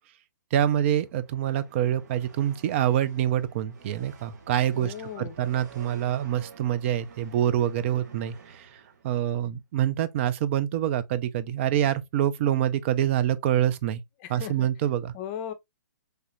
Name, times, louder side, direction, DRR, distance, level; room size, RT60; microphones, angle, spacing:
voice 1, 0.5-14.0 14.3-15.1, right 11 dB, 40° right, 0.4 m, -26 dB
sound 1, 0.7-9.4, right 5 dB, 60° right, 0.9 m, -50 dB
voice 2, 4.7-5.4 14.2-14.7 15.1-15.5, left 9 dB, 35° left, 0.5 m, -37 dB
3.2 x 2.4 x 2.9 m
hypercardioid pair, 130°, 10 cm